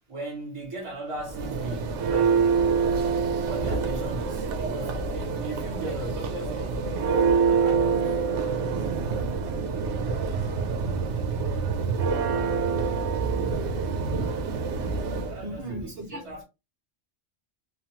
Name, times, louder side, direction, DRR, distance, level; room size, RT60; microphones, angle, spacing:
voice 1, 0.1-2.7 3.4-8.1 15.2-16.4, right 2 dB, 30° right, 1.1 m, -37 dB
Church bell, 1.2-15.4, right 5 dB, 90° right, 0.9 m, -26 dB
voice 2, 13.2-14.3 14.8-15.0 15.4-16.2, right 2 dB, 65° right, 0.9 m, -36 dB
3.0 x 2.1 x 2.9 m
omnidirectional pair, 1.2 m